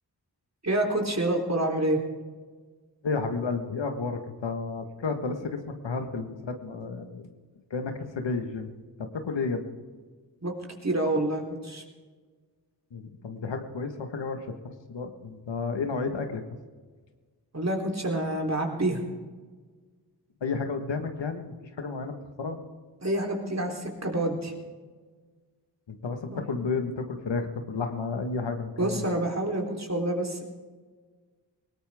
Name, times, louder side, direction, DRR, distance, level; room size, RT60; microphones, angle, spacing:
voice 1, 0.6-2.0 10.4-10.6 10.8-11.8 17.5-19.0 23.0-24.5 26.3-26.4 28.8-30.4, right 1 dB, 40° right, 1 dB, 3.7 m, -27 dB
voice 2, 3.0-7.3 7.7-8.7 9.0-9.6 12.9-16.4 20.4-22.6 25.9-29.0, left 4 dB, 85° left, 6 dB, 1.6 m, -32 dB
20.0 x 17.5 x 3.6 m, 1.5 s
cardioid pair, 40°, 43 cm